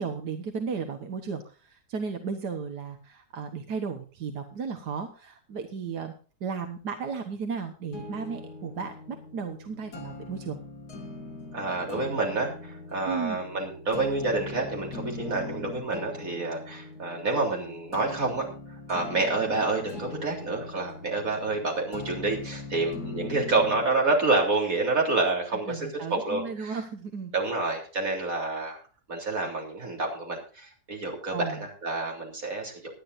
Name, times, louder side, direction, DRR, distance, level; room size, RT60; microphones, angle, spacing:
voice 1, 0.0-6.1 6.4-10.6 13.1-13.4 25.7-27.3 31.3-31.6, right 5 dB, 85° right, 5 dB, 1.8 m, -34 dB
sound 1, 7.9-23.9, left 3 dB, 75° left, 2.3 m, -41 dB
voice 2, 11.5-18.5 18.9-26.8 27.3-28.8 29.1-32.9, right 3 dB, 55° right, 0 dB, 4.0 m, -28 dB
19.0 x 11.5 x 2.6 m, 0.38 s
omnidirectional pair, 1.7 m